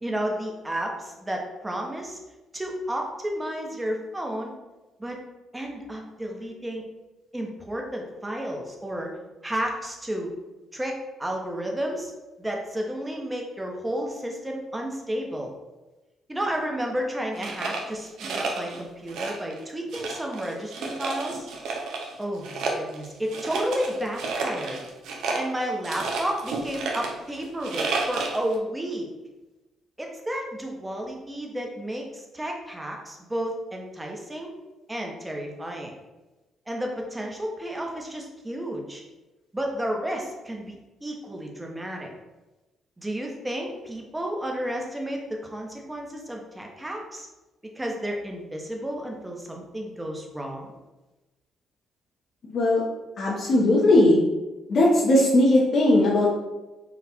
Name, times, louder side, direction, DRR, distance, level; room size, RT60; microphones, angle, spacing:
voice 1, 0.0-2.2 2.5-4.5 5.0-5.2 5.5-6.8 7.3-9.1 9.4-10.3 10.7-12.1 12.4-15.5 16.3-21.5 22.2-24.8 25.3-29.1 30.0-34.5 34.9-35.9 36.7-39.0 39.5-40.8 41.0-42.1 43.0-45.2 45.5-47.3 47.7-50.8, equal, 15° right, 0 dB, 0.9 m, -32 dB
sound 1, 17.4-18.8 19.1-19.6 19.9-22.1 22.4-28.5, right 3 dB, 80° right, 0.7 m, -31 dB
voice 2, 52.5-52.8 53.2-54.2 54.7-56.4, left 1 dB, 50° left, -5 dB, 0.9 m, -19 dB
4.0 x 2.4 x 4.3 m, 1.1 s
cardioid pair, 90°, 0 cm